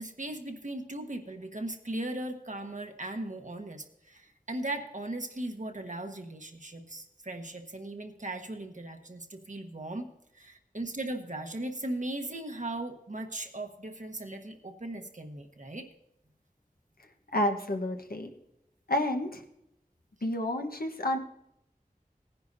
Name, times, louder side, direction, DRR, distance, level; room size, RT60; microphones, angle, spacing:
voice 1, 0.0-10.1 10.3-15.9, right 1 dB, 55° right, 4 dB, 1.2 m, -38 dB
voice 2, 17.3-18.3 18.9-19.4 20.2-21.2, left 1 dB, 80° left, 3 dB, 1.2 m, -29 dB
18.5 x 10.5 x 2.7 m, 0.81 s
wide cardioid pair, 45°, 15 cm